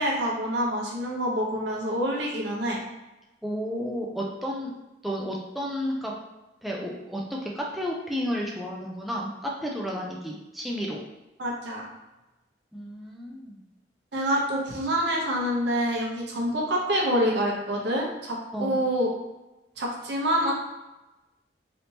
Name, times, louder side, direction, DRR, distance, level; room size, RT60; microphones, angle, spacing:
voice 1, 0.0-2.8 11.4-11.8 14.1-19.1 19.8-20.5, equal, 75° right, -2 dB, 0.8 m, -26 dB
voice 2, 3.4-4.7 5.0-6.1 6.6-11.0 12.7-13.6 18.5-18.8, equal, ahead, -3 dB, 0.3 m, -32 dB
3.4 x 2.7 x 2.8 m, 1.0 s
head